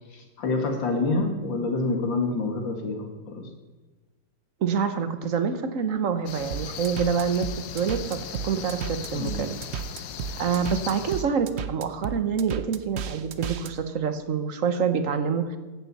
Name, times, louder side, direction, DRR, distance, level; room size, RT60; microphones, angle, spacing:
voice 1, 0.1-3.5 9.1-9.4, left 3 dB, 85° left, 4 dB, 2.6 m, -27 dB
voice 2, 4.6-9.5 10.4-15.6, right 6 dB, 50° right, 9 dB, 1.2 m, -26 dB
sound 1, 6.3-11.2, left 8 dB, 65° left, 1.3 m, -38 dB
sound 2, 6.5-13.7, right 8 dB, 70° right, 0.6 m, -34 dB
16.0 x 12.0 x 4.2 m, 1.3 s
omnidirectional pair, 2.0 m